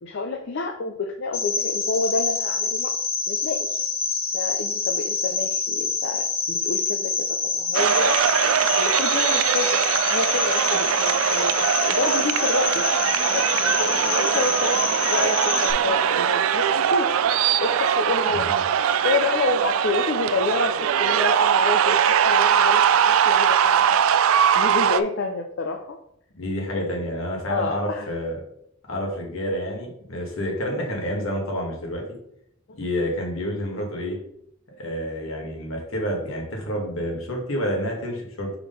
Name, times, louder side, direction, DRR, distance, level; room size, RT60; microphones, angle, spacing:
voice 1, 0.0-2.9 3.3-3.8 4.3-8.2 8.8-9.8 10.1-11.5 11.9-12.8 13.3-14.8 15.1-17.1 17.6-18.5 19.0-24.0 24.5-26.0 26.7-27.0 27.5-28.1 32.7-32.8, left 3 dB, 60° left, 4 dB, 0.5 m, -28 dB
Cricket, 1.3-15.7, left 4 dB, 30° left, 0.9 m, -26 dB
sound 1, 7.7-25.0, right 8 dB, 90° right, 0.3 m, -21 dB
voice 2, 26.4-28.4 28.9-32.0 32.8-34.2 34.8-38.5, equal, 80° left, 0 dB, 1.7 m, -29 dB
4.6 x 3.7 x 5.4 m, 0.73 s
head